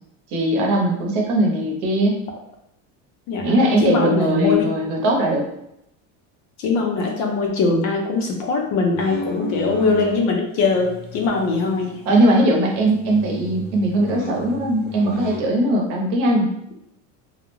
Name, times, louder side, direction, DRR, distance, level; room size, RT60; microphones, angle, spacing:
voice 1, 0.3-2.2 3.4-5.5 12.1-16.5, right 1 dB, 65° right, 0 dB, 0.8 m, -19 dB
voice 2, 3.3-4.7 6.6-12.0, left 4 dB, 50° left, 1 dB, 0.6 m, -21 dB
sound 1, 8.9-10.2 10.7-12.5 12.7-15.5, equal, 85° left, 1.1 m, -34 dB
2.4 x 2.1 x 3.0 m, 0.79 s
cardioid pair, 155°, 36 cm